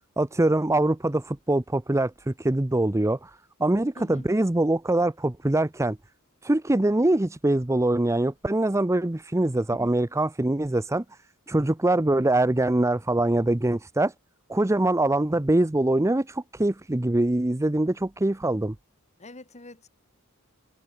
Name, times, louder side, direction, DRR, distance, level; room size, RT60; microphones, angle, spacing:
voice 1, 0.2-6.0 6.4-11.0 11.5-14.1 14.5-18.7, right 1 dB, 15° right, 0.6 m, -23 dB
voice 2, 3.9-4.3 9.7-9.9 19.2-19.9, left 1 dB, 35° left, 3.1 m, -44 dB
head